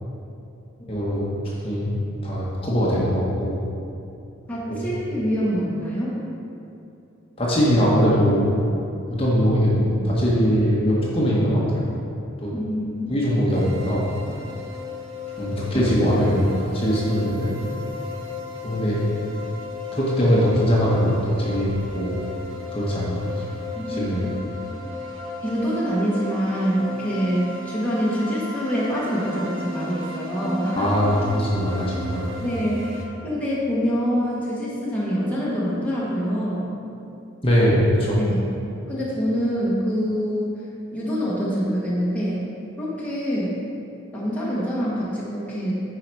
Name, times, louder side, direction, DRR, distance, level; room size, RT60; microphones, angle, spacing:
voice 1, 0.9-1.4 1.6-1.9 2.2-3.5 4.7-4.9 7.4-8.6 9.1-11.8 12.4-12.5 13.1-14.1 15.4-17.5 18.6-19.0 19.9-22.2 22.7-23.4 23.9-24.2 30.8-32.4 37.4-38.2, equal, 25° left, -6 dB, 1.3 m, -21 dB
voice 2, 4.5-6.2 12.5-13.1 23.7-24.0 25.4-30.9 32.4-36.7 38.2-38.4 38.9-40.6 40.9-42.4 42.8-43.6 44.1-45.7, equal, 5° left, -8 dB, 1.3 m, -25 dB
sound 1, 13.5-33.1, left 3 dB, 65° right, 1.0 m, -35 dB
9.6 x 4.9 x 4.7 m, 2.7 s
head